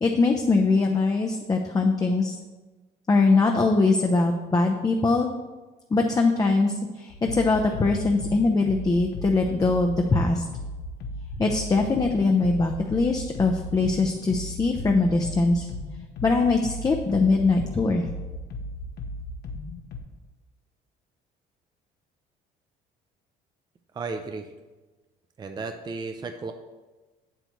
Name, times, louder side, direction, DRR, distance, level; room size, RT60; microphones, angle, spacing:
voice 1, 0.0-2.3 3.1-5.3 5.9-10.4 11.4-15.7 16.2-18.0, left 3 dB, 20° left, 2 dB, 0.6 m, -22 dB
sound 1, 7.1-20.0, left 1 dB, 70° left, 1.0 m, -36 dB
voice 2, 23.9-24.5 25.4-26.5, right 4 dB, 25° right, 6 dB, 0.5 m, -34 dB
7.9 x 7.9 x 3.1 m, 1.2 s
cardioid pair, 110°, 17 cm